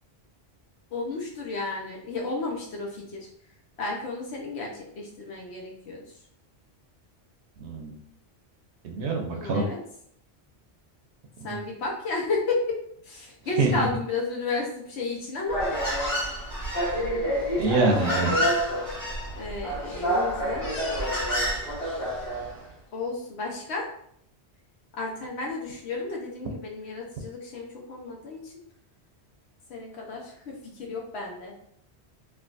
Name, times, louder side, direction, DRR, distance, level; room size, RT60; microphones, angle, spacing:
voice 1, 0.9-3.3 3.8-6.1 9.3-9.8 11.4-15.6 19.4-20.7 22.9-23.9 24.9-28.5 29.7-31.6, left 3 dB, 80° left, -1 dB, 1.1 m, -32 dB
voice 2, 7.6-8.0 8.8-9.6 11.5-11.6 13.6-13.9 17.6-18.5, right 3 dB, 80° right, 2 dB, 0.9 m, -25 dB
Human voice, 15.5-22.6, equal, 30° left, 1.6 m, -28 dB
3.4 x 2.4 x 2.5 m, 0.68 s
omnidirectional pair, 1.1 m